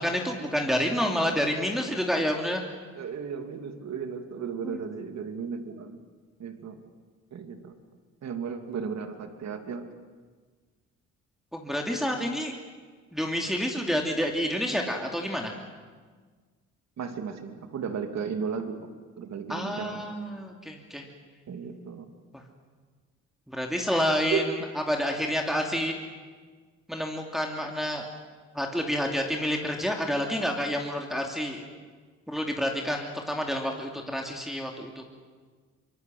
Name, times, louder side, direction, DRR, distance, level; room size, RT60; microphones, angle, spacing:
voice 1, 0.0-2.6 4.6-4.8 11.5-12.5 13.1-15.5 19.5-21.1 22.3-22.4 23.5-25.9 26.9-28.0 28.5-31.6 32.3-35.0, equal, ahead, 1 dB, 2.9 m, -29 dB
voice 2, 2.9-6.0 6.4-6.8 7.3-7.7 8.2-9.8 12.4-12.5 17.0-18.9 19.2-20.0 21.5-22.1 24.3-24.5, right 6 dB, 60° right, 6 dB, 2.7 m, -34 dB
24.5 x 22.5 x 7.8 m, 1.5 s
cardioid pair, 90°, 30 cm